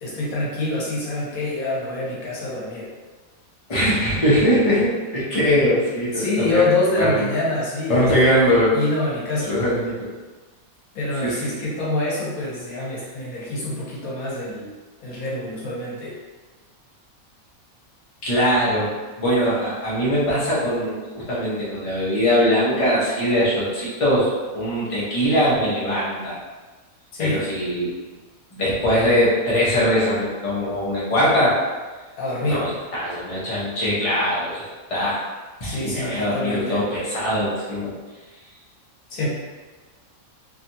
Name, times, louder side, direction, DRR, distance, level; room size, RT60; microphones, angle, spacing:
voice 1, 0.0-2.9 6.1-9.5 10.9-14.7 15.0-16.1 27.1-27.5 32.2-32.7 35.6-36.9 39.1-39.3, left 2 dB, 80° left, -7 dB, 1.4 m, -26 dB
voice 2, 3.7-6.7 7.0-7.3 7.9-8.8 9.5-10.1 11.2-11.4 18.2-18.9 19.2-26.4 27.2-27.9 28.5-31.6 32.5-35.2 35.6-37.9, equal, 30° left, -9 dB, 0.8 m, -21 dB
3.2 x 2.4 x 2.7 m, 1.3 s
omnidirectional pair, 1.5 m